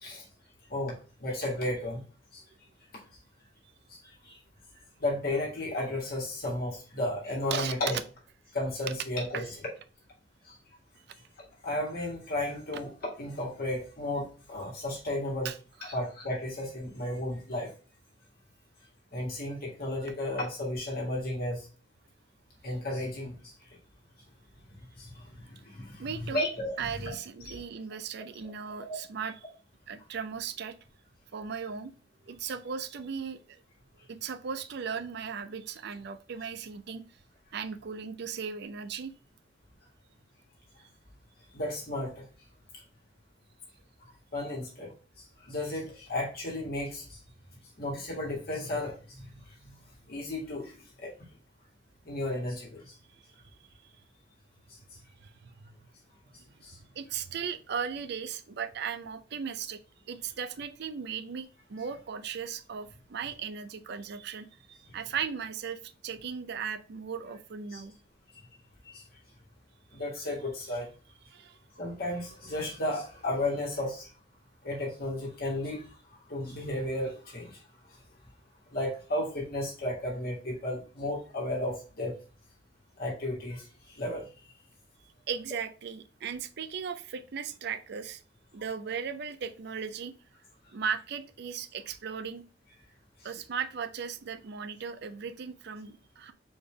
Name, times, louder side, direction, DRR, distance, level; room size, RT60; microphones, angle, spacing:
voice 1, 1.2-2.0 2.3-2.4 3.9-4.0 4.2-4.4 5.0-8.0 8.5-9.5 10.5-10.6 11.6-12.9 13.2-15.5 15.8-17.7 19.1-21.7 22.6-23.5 25.0-27.1 27.5-27.6 28.8-29.0 32.4-32.5 41.5-42.1 44.3-44.9 45.4-47.2 47.8-49.3 50.1-51.1 52.0-52.9 56.6-56.8 67.7-67.8 68.9-69.0 69.9-70.9 71.7-74.1 74.6-75.8 76.3-77.6 78.7-82.1 83.0-84.3, left 1 dB, 55° left, -3 dB, 1.5 m, -33 dB
voice 2, 26.0-26.5 26.8-29.4 29.9-30.8 31.3-31.9 32.3-33.6 34.1-37.0 37.5-39.1 55.2-55.7 56.3-59.8 60.1-67.9 69.9-70.0 71.3-71.6 85.3-88.2 88.5-90.1 90.7-92.4 93.2-96.3, right 6 dB, 60° right, 11 dB, 0.4 m, -37 dB
4.3 x 3.3 x 3.2 m, 0.37 s
head